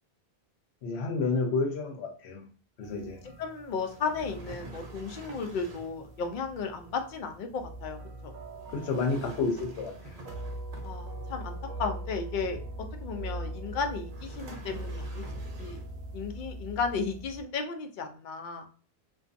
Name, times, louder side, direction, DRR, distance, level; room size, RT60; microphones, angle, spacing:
voice 1, 0.8-2.4 2.8-3.2 8.7-10.2, left 3 dB, 85° left, 3 dB, 0.9 m, -30 dB
sound 1, 2.8-17.4, right 1 dB, 55° right, 0.5 m, -41 dB
voice 2, 3.4-8.3 10.8-12.6 13.0-15.3 15.6-15.8 16.1-18.7, left 5 dB, 60° left, 5 dB, 0.6 m, -34 dB
sound 2, 3.8-6.1 8.6-11.3 14.1-16.0, right 2 dB, 80° right, 0.9 m, -48 dB
2.5 x 2.2 x 2.5 m, 0.40 s
omnidirectional pair, 1.1 m